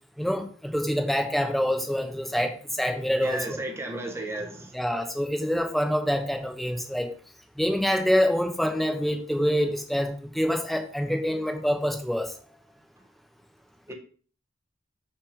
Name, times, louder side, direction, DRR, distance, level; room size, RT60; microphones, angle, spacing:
voice 1, 0.2-3.6 4.7-7.1 7.6-12.3, equal, ahead, 1.1 m, -26 dB
voice 2, 3.2-4.8 13.9-14.0, right 2 dB, 15° right, 1.3 m, -33 dB
6.9 x 6.0 x 5.1 m
head